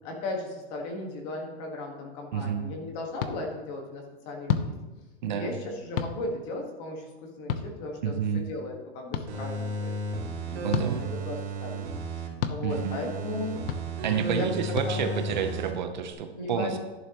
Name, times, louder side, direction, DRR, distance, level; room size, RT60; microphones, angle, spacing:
voice 1, 0.0-4.7 5.3-10.6 11.0-13.6 14.2-15.2 16.3-16.8, left 2 dB, 25° left, 1 dB, 1.6 m, -36 dB
voice 2, 2.3-2.6 5.2-5.5 8.0-8.4 10.6-11.0 12.6-13.1 14.0-16.8, right 7 dB, 45° right, 6 dB, 0.8 m, -29 dB
sound 1, 3.2-3.3 4.5-4.7 6.0-6.1 7.5-7.7 9.1-9.2 10.7-10.9 12.4-12.6 13.7-13.8 14.7-14.9, left 8 dB, 55° left, 0.9 m, -28 dB
sound 2, 9.3-12.3 12.7-15.7 16.1-16.2, right 2 dB, 70° right, 2.9 m, -33 dB
12.5 x 11.0 x 3.0 m, 1.2 s
supercardioid pair, 180°, 33 cm